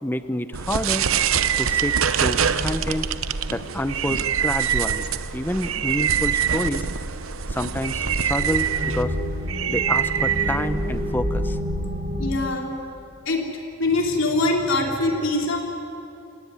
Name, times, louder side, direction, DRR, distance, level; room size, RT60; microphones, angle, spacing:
voice 1, 0.0-1.1 1.6-3.1 3.5-5.1 5.3-6.9 7.5-9.2 9.7-11.6, left 1 dB, 10° left, 11 dB, 0.8 m, -28 dB
sound 1, 0.5-11.1, right 8 dB, 75° right, 0.9 m, -24 dB
sound 2, 7.4-12.4, equal, 40° right, 4.1 m, -29 dB
voice 2, 11.9-12.7 13.3-13.5 13.8-15.6, left 2 dB, 60° left, 1 dB, 3.7 m, -23 dB
29.5 x 18.5 x 9.7 m, 2.8 s
head